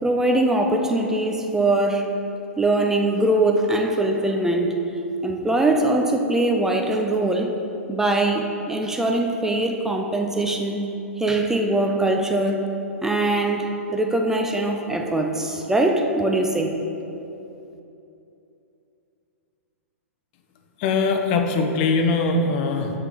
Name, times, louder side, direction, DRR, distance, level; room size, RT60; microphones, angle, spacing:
voice 1, 0.0-2.1 2.6-4.7 5.2-7.5 7.9-10.8 11.2-12.7 13.0-16.7, right 2 dB, 5° right, 3 dB, 0.5 m, -22 dB
voice 2, 20.8-23.0, left 3 dB, 45° left, 4 dB, 0.7 m, -21 dB
4.9 x 4.8 x 5.6 m, 2.8 s
figure-of-eight pair, 110°, 8 cm